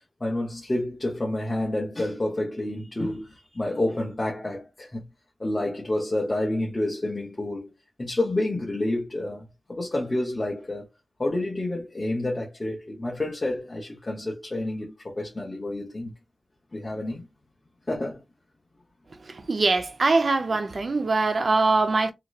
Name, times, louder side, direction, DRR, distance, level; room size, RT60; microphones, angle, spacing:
voice 1, 0.2-5.1 5.4-7.7 8.0-10.9 11.2-16.1 16.7-17.2 17.9-18.2, left 1 dB, 30° left, 0.8 m, -29 dB
voice 2, 19.3-22.1, right 3 dB, 55° right, 0.5 m, -23 dB
3.1 x 2.9 x 2.3 m
wide cardioid pair, 120°, 0 cm